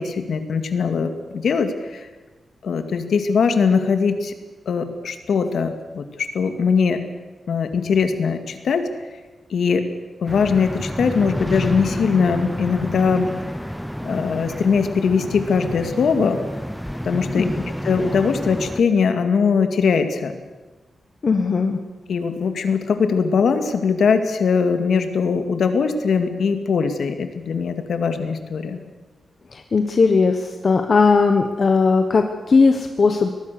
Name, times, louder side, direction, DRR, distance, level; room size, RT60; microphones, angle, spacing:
voice 1, 0.0-2.1 2.6-4.3 4.7-7.0 7.5-8.9 9.5-9.9 10.2-13.4 14.0-16.4 17.0-17.5 17.8-20.4 22.1-28.8, left 5 dB, 70° left, 7 dB, 2.2 m, -21 dB
sound 1, 10.3-18.8, equal, ahead, 0.7 m, -29 dB
voice 2, 17.3-17.6 21.2-21.8 29.5-33.3, left 4 dB, 40° left, 5 dB, 1.2 m, -18 dB
23.5 x 19.5 x 6.9 m, 1.2 s
wide cardioid pair, 160°, 0 cm